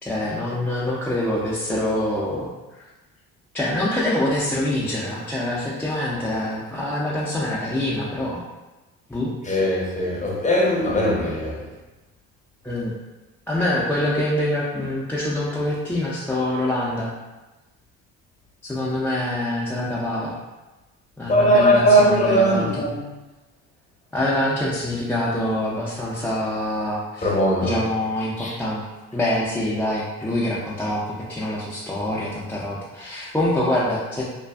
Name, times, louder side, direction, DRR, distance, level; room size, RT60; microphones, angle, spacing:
voice 1, 0.0-2.5 2.8-2.9 3.5-8.4 9.1-9.3 12.6-12.9 13.5-17.1 18.7-20.3 21.2-22.9 24.1-28.8 29.1-34.2, left 1 dB, 5° left, -7 dB, 0.4 m, -25 dB
voice 2, 9.5-11.6 21.3-22.9 27.2-27.8 28.4-28.5, equal, 20° left, -3 dB, 0.7 m, -19 dB
2.5 x 2.2 x 2.3 m, 1.1 s
supercardioid pair, 70°, 35 cm